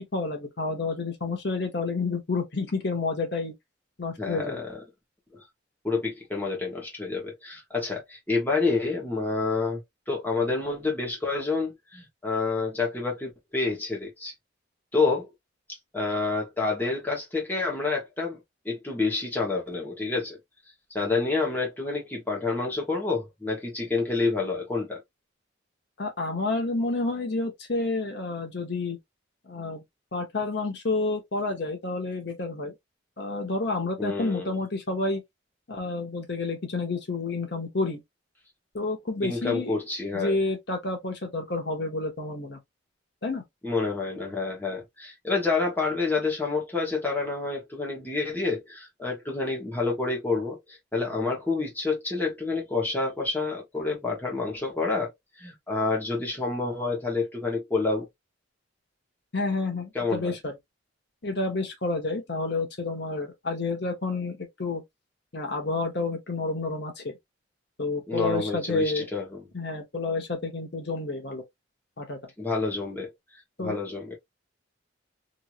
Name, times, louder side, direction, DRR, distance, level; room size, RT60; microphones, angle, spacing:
voice 1, 0.0-3.5 4.0-4.6 26.0-29.0 29.5-29.8 30.1-32.7 33.2-35.2 35.7-38.0 38.7-39.7 40.1-42.6 43.2-43.4 59.3-60.6 61.2-64.8 65.3-67.1 67.8-69.0 69.5-71.4 72.0-72.2 73.6-73.8, left 3 dB, 55° left, 0.9 m, -29 dB
voice 2, 4.2-4.7 5.3-5.4 5.8-9.8 10.1-14.3 14.9-15.3 15.9-20.4 20.9-25.0 34.0-34.5 39.2-40.3 43.6-55.1 55.4-58.1 59.9-60.3 68.1-69.2 72.4-73.1 73.6-74.2, left 3 dB, 10° left, 1.0 m, -28 dB
3.0 x 2.6 x 2.4 m
head